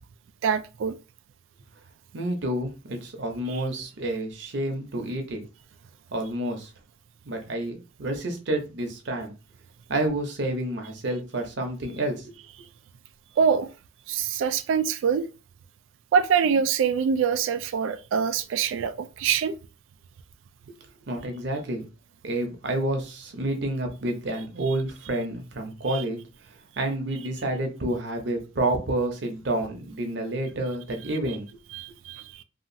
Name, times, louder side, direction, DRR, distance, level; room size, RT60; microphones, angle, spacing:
voice 1, 0.4-0.9 3.5-3.6 13.4-13.7 14.1-15.3 16.1-19.6 25.9-26.0 31.7-32.4, right 7 dB, 85° right, 0.3 m, -24 dB
voice 2, 2.1-5.4 6.1-6.7 7.3-9.3 9.9-12.3 20.7-20.8 21.1-21.9 22.2-26.2 26.8-31.5, right 1 dB, 65° right, 0.7 m, -29 dB
2.8 x 2.4 x 2.6 m
head